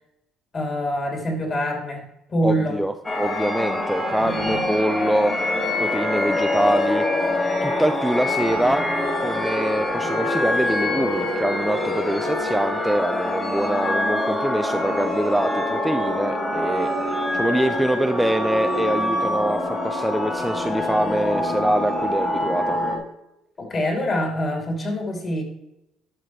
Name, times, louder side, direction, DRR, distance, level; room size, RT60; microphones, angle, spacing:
voice 1, 0.5-2.0 2.3-2.8 4.2-4.6 23.6-25.4, equal, 35° left, 1 dB, 2.9 m, -25 dB
voice 2, 2.4-5.5 5.8-7.2 7.6-8.9 9.2-16.9 17.3-22.8, right 1 dB, 5° right, 7 dB, 0.4 m, -24 dB
sound 1, 3.0-23.0, left 1 dB, 20° left, 2.2 m, -25 dB
12.0 x 5.9 x 3.2 m, 0.85 s
cardioid pair, 105°, 0 cm